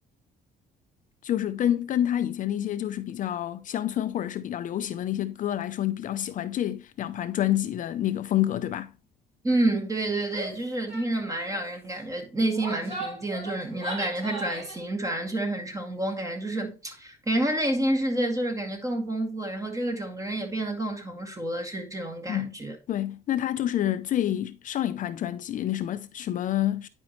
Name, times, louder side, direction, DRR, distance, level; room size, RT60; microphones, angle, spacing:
voice 1, 1.2-8.9 22.3-22.5 22.9-26.9, left 12 dB, 50° left, 0.5 m, -28 dB
voice 2, 9.4-22.8, right 1 dB, 20° right, 2.2 m, -29 dB
Female speech woman speaking / Yell, 10.3-10.6 10.9-11.1 11.4-11.7 12.4-14.8, right 2 dB, 35° right, 4.3 m, -37 dB
9.7 x 5.4 x 3.0 m
cardioid pair, 110°, 17 cm